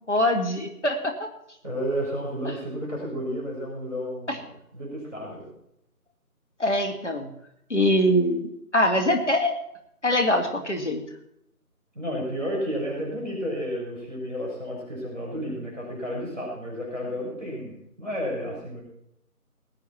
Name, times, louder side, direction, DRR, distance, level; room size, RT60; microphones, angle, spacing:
voice 1, 0.1-1.1 4.3-4.4 6.6-7.3 7.7-9.5 10.0-11.0, left 1 dB, 50° left, 3 dB, 2.2 m, -23 dB
voice 2, 1.6-5.5 11.9-18.8, equal, 10° left, -14 dB, 5.6 m, -32 dB
20.0 x 8.6 x 4.4 m, 0.78 s
figure-of-eight pair, 175°, 45 cm